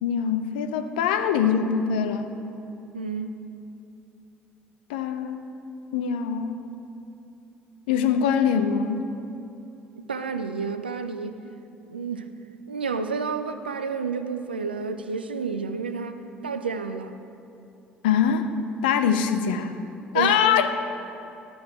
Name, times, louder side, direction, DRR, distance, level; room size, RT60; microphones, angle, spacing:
voice 1, 0.0-2.3 4.9-5.5 5.9-6.6 7.9-9.1 18.0-18.5 18.8-19.8 20.1-20.7, left 7 dB, 70° left, 8 dB, 0.5 m, -23 dB
voice 2, 2.9-3.4 10.1-11.4 11.9-12.3 12.7-17.2 20.1-20.4, right 5 dB, 85° right, 9 dB, 0.4 m, -30 dB
12.0 x 6.1 x 4.8 m, 2.8 s
figure-of-eight pair, 50°, 5 cm